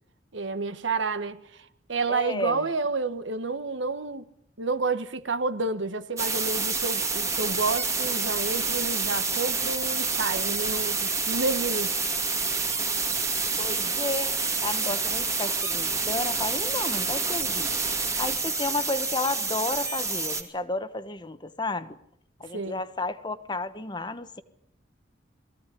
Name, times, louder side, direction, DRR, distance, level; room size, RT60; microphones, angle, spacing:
voice 1, 0.3-4.3 4.6-11.9 22.5-22.8, right 3 dB, 80° right, 1.3 m, -30 dB
voice 2, 2.1-2.7 13.6-17.7 18.2-22.0 22.4-24.4, left 2 dB, 25° left, 1.2 m, -32 dB
sound 1, 6.2-20.4, right 4 dB, 15° right, 2.4 m, -28 dB
22.5 x 16.0 x 9.8 m
head